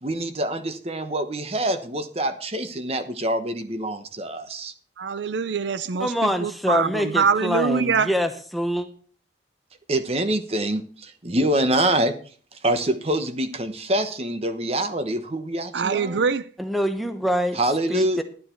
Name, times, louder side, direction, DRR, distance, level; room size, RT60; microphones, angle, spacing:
voice 1, 0.0-4.7 9.9-12.1 12.5-16.3 17.6-18.2, right 1 dB, 35° right, 1.0 m, -25 dB
voice 2, 5.0-6.1 6.4-8.1 15.7-16.5, right 5 dB, 70° right, 0.5 m, -23 dB
voice 3, 6.0-8.9 16.6-17.6 17.9-18.2, equal, ahead, 1.0 m, -25 dB
11.0 x 9.6 x 4.5 m
head